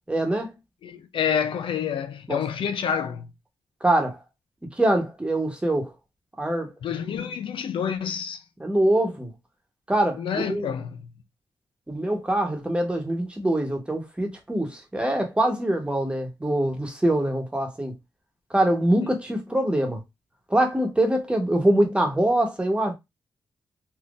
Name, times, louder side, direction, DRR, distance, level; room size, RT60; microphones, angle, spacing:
voice 1, 0.1-0.5 2.3-2.4 3.8-4.2 4.8-5.9 6.4-6.7 8.6-9.3 9.9-10.7 11.9-17.9 18.5-20.0 20.5-22.9, right 1 dB, 10° right, 1.1 m, -24 dB
voice 2, 0.8-3.3 6.8-8.4 10.2-11.0, left 7 dB, 85° left, 0.5 m, -28 dB
3.6 x 2.8 x 2.5 m
wide cardioid pair, 105°, 9 cm